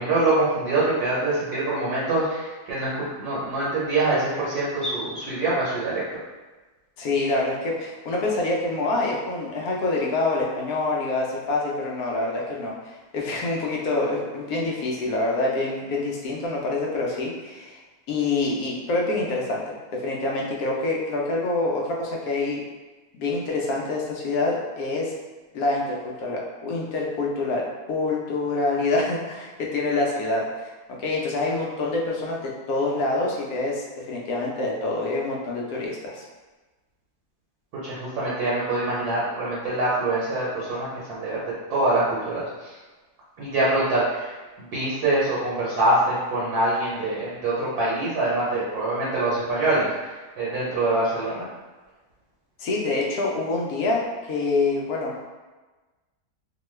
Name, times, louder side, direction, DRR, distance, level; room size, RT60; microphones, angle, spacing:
voice 1, 0.0-6.0 37.8-42.8 43.4-51.5, right 2 dB, 70° right, -7 dB, 1.2 m, -25 dB
voice 2, 7.0-17.8 18.1-22.6 23.1-25.1 25.5-30.7 31.0-36.2 52.6-55.2, left 2 dB, 70° left, -2 dB, 1.0 m, -26 dB
2.9 x 2.2 x 3.1 m, 1.2 s
omnidirectional pair, 1.8 m